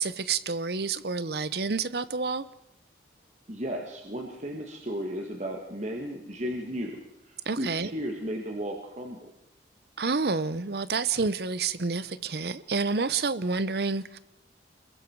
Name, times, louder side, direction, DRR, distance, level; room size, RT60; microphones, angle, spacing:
voice 1, 0.0-2.5 7.5-7.9 10.0-14.2, right 4 dB, 60° right, 16 dB, 0.8 m, -29 dB
voice 2, 3.5-9.3, equal, 40° right, 1 dB, 2.0 m, -35 dB
26.5 x 22.0 x 4.7 m, 0.83 s
head